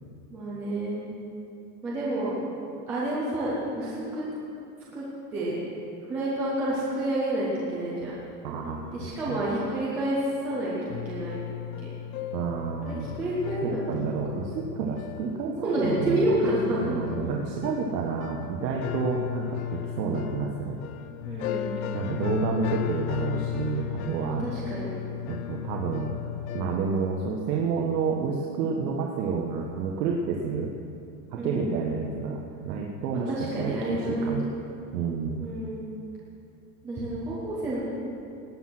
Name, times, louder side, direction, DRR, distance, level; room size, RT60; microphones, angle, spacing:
voice 1, 0.3-1.0 1.8-2.3 2.9-4.2 4.9-5.1 5.3-5.5 6.1-8.1 8.9-11.4 11.8-11.9 12.8-14.1 15.6-16.9 21.2-21.7 24.3-24.9 31.3-31.8 33.1-34.5 35.4-35.9 36.8-37.8, right 1 dB, 5° right, -7 dB, 0.3 m, -29 dB
voice 2, 8.4-8.9 9.3-9.4 12.3-13.1 13.6-16.3 16.8-20.8 21.9-24.5 25.3-26.1 26.5-30.7 31.3-34.5 34.9-35.4, right 5 dB, 85° right, 0 dB, 1.6 m, -30 dB
sound 1, 8.6-9.9 10.5-10.6 10.9-26.8, left 11 dB, 60° left, 0.8 m, -35 dB
18.0 x 9.8 x 6.1 m, 2.6 s
supercardioid pair, 180°, 48 cm